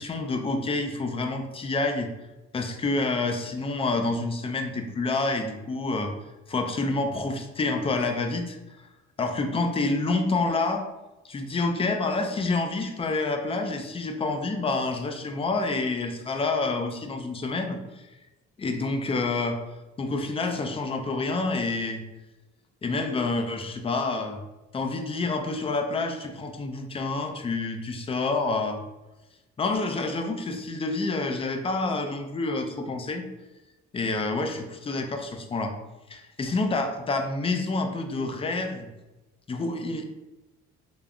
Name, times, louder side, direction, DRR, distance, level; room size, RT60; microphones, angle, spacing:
voice 1, 0.0-2.1 2.5-6.1 6.5-8.6 9.2-10.8 11.2-17.8 18.6-19.6 20.0-22.0 22.8-24.4 24.7-28.8 29.6-33.3 33.9-35.7 36.1-38.9 39.5-40.0, left 3 dB, 20° left, 4 dB, 0.3 m, -28 dB
3.4 x 2.0 x 2.3 m, 1.0 s
cardioid pair, 90°, 30 cm